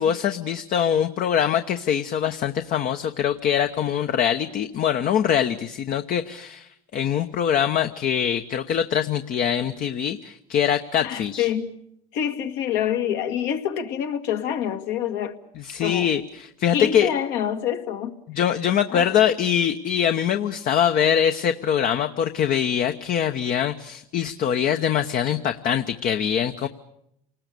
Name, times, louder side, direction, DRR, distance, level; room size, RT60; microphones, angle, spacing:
voice 1, 0.0-11.5 15.6-17.1 18.3-26.7, left 9 dB, 50° left, 1.1 m, -23 dB
voice 2, 11.0-11.7 12.1-15.4 15.8-16.1 16.7-18.2 18.9-19.1, left 9 dB, 70° left, 1.9 m, -26 dB
28.5 x 19.5 x 6.9 m
hypercardioid pair, 80°, 18 cm